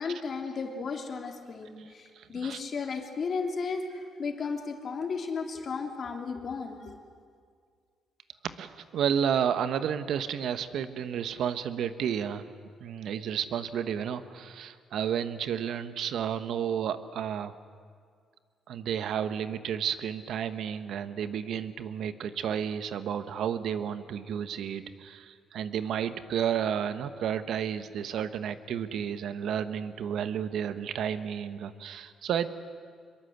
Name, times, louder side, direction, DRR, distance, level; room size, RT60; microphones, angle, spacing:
voice 1, 0.0-7.0, left 5 dB, 50° left, 3 dB, 3.3 m, -34 dB
voice 2, 1.8-2.6 8.4-12.5 12.8-17.5 18.7-32.5, right 8 dB, 75° right, 11 dB, 1.3 m, -32 dB
25.0 x 22.0 x 8.1 m, 2.1 s
cardioid pair, 90°, 0 cm